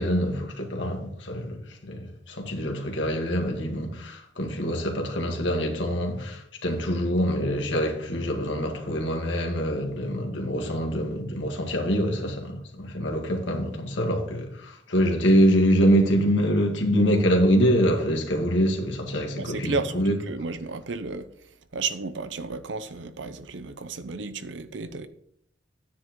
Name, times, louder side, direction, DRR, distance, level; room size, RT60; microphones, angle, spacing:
voice 1, 0.0-20.2, equal, 80° left, 1.9 m, -25 dB
voice 2, 19.4-21.3 21.7-25.1, right 4 dB, 75° right, 0.7 m, -32 dB
10.0 x 9.6 x 3.1 m
head